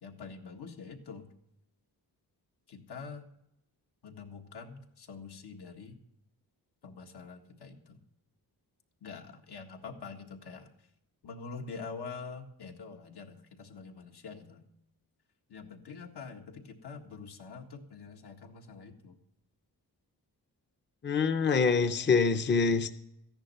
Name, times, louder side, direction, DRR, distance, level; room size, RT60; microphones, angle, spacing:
voice 1, 0.0-1.3 2.7-3.3 4.0-6.0 6.8-8.0 9.0-10.9 11.2-14.7 15.5-19.2, left 5 dB, 80° left, 2 dB, 1.8 m, -45 dB
voice 2, 21.0-22.9, left 5 dB, 30° left, 9 dB, 0.6 m, -25 dB
14.5 x 10.5 x 5.6 m, 0.80 s
wide cardioid pair, 140°, 39 cm